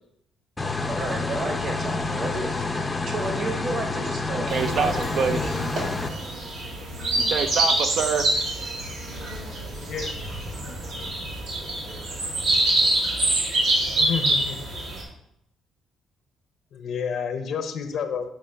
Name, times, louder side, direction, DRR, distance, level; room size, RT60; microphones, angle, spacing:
sound 1, 0.6-6.1, left 3 dB, 15° left, 0.5 m, -28 dB
voice 1, 0.9-4.5 4.8-5.6, right 2 dB, 45° right, 3 dB, 1.3 m, -32 dB
voice 2, 4.4-5.4 7.2-8.3, right 6 dB, 60° right, 7 dB, 0.4 m, -26 dB
sound 2, 4.5-15.0, right 1 dB, 80° right, 2.1 m, -26 dB
voice 3, 14.0-14.7 16.7-18.3, left 6 dB, 60° left, 8 dB, 0.6 m, -30 dB
7.1 x 2.9 x 5.4 m, 0.77 s
cardioid pair, 130°, 0 cm